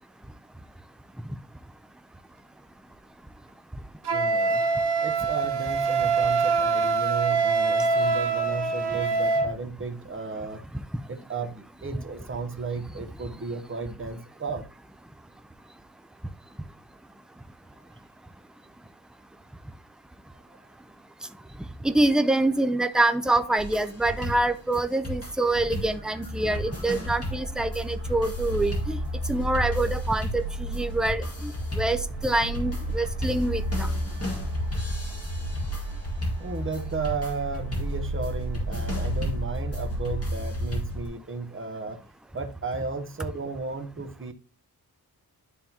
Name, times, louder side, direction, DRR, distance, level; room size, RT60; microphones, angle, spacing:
Wind instrument woodwind instrument, 4.0-9.5, right 4 dB, 90° right, 0.9 m, -24 dB
voice 1, 4.1-4.6 5.0-10.6 11.1-14.7 36.4-42.0 42.3-44.3, right 4 dB, 30° right, 1.0 m, -34 dB
voice 2, 21.8-29.0 29.3-33.9, right 2 dB, ahead, 0.4 m, -25 dB
sound 1, 23.6-41.1, equal, 40° left, 2.2 m, -36 dB
sound 2, 25.5-41.1, equal, 55° left, 2.7 m, -32 dB
11.0 x 3.7 x 2.8 m
wide cardioid pair, 110°, 39 cm